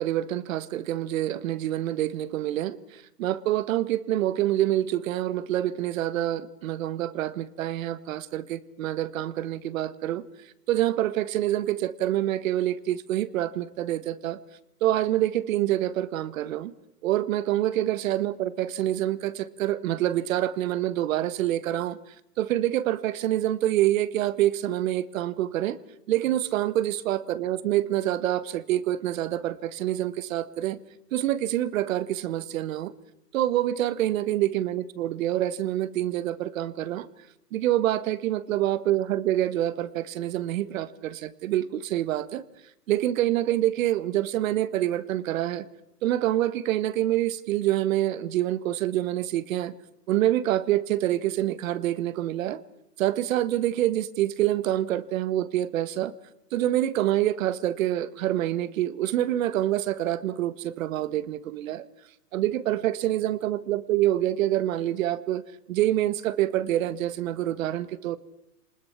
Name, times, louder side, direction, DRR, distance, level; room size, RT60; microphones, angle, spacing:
voice 1, 0.0-10.2 10.7-14.4 14.8-16.7 17.0-22.0 22.4-25.8 26.1-30.8 31.1-32.9 33.3-37.1 37.5-42.4 42.9-45.6 46.0-49.7 50.1-52.6 53.0-56.1 56.5-61.9 62.3-65.4 65.7-68.2, right 13 dB, 55° right, 17 dB, 1.4 m, -26 dB
26.5 x 20.5 x 5.9 m, 0.87 s
hypercardioid pair, 135°, 48 cm